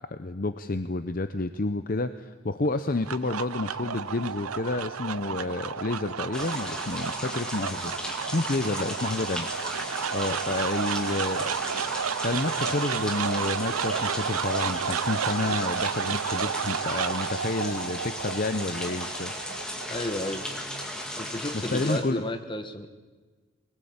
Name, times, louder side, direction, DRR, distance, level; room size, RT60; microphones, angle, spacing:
voice 1, 0.1-7.9 8.3-9.5 9.8-11.5 12.2-19.3 21.5-22.2, left 2 dB, 40° left, 10 dB, 0.7 m, -30 dB
sound 1, 2.7-21.1, right 6 dB, 85° right, 0.7 m, -32 dB
sound 2, 6.3-22.0, left 1 dB, 5° left, 2.3 m, -36 dB
voice 2, 8.6-9.1 19.9-20.5 21.2-22.9, left 1 dB, 20° left, 6 dB, 1.4 m, -33 dB
23.0 x 19.0 x 8.7 m, 1.4 s
head